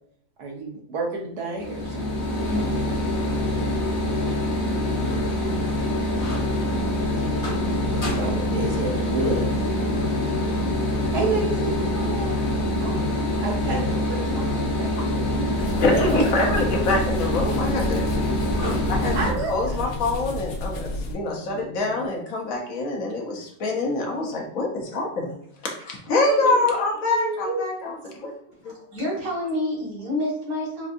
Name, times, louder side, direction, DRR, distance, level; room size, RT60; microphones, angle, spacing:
voice 1, 0.4-2.7 7.9-9.4 11.1-12.4 12.8-13.0 13.4-14.9 15.2-16.3 19.1-19.9 27.1-27.6, right 2 dB, 85° right, 0 dB, 1.4 m, -30 dB
sound 1, 1.6-19.3, left 1 dB, 35° left, 0.7 m, -25 dB
sound 2, 7.0-22.1, left 5 dB, 15° right, 0.8 m, -38 dB
sound 3, 15.6-21.2, left 1 dB, 85° left, 1.2 m, -32 dB
voice 2, 15.8-18.0 18.9-19.2 19.5-25.4 25.6-28.3 28.6-28.7, left 2 dB, 65° left, 0 dB, 1.1 m, -25 dB
voice 3, 28.7-30.9, left 1 dB, 70° right, -4 dB, 1.9 m, -28 dB
4.5 x 2.5 x 2.5 m, 0.66 s
omnidirectional pair, 1.6 m